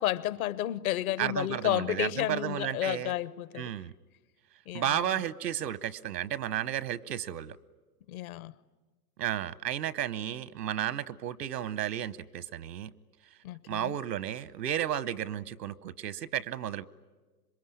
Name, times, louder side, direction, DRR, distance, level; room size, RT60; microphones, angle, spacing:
voice 1, 0.0-3.7 4.7-5.2 8.1-8.5 13.4-14.0, left 14 dB, 60° left, 16 dB, 1.1 m, -32 dB
voice 2, 1.2-3.1 3.6-3.9 4.7-7.6 9.2-12.9 13.7-16.8, right 11 dB, 85° right, 18 dB, 1.1 m, -33 dB
26.5 x 22.5 x 9.9 m, 1.2 s
hypercardioid pair, 125°, 48 cm